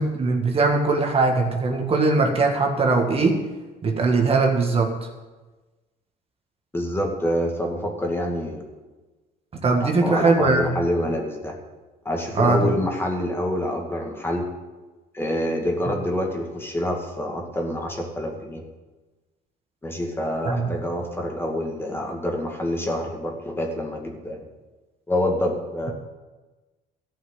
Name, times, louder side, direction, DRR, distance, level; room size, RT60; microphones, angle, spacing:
voice 1, 0.0-3.4 3.8-4.9 9.6-10.7 12.4-12.8 20.5-20.7, right 3 dB, 35° right, 2 dB, 1.8 m, -20 dB
voice 2, 6.7-8.7 9.8-11.5 12.0-14.5 15.1-18.6 19.8-24.4 25.1-25.9, left 1 dB, 15° left, 1 dB, 2.2 m, -27 dB
14.0 x 5.7 x 9.3 m, 1.2 s
cardioid pair, 110°, 17 cm